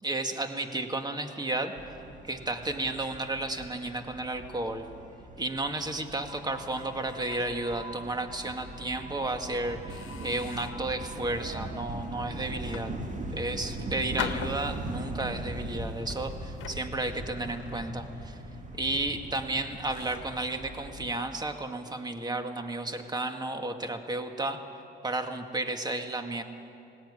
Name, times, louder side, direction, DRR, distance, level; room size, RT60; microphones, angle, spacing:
voice 1, 0.0-1.9 2.3-4.9 5.4-12.9 13.3-18.4 18.8-24.6 25.0-26.4, right 2 dB, 20° right, 6 dB, 1.9 m, -33 dB
sound 1, 1.7-21.1, right 1 dB, 40° right, 2.4 m, -40 dB
sound 2, 6.3-8.1 8.5-8.7 9.3-9.4 9.9-10.9 11.5-11.8 12.5-13.5 14.2-15.2 15.9-18.3 18.6-18.9 19.4-19.5 19.9-20.4, left 10 dB, 85° left, 1.1 m, -43 dB
19.0 x 17.5 x 9.8 m, 2.6 s
cardioid pair, 90°, 20 cm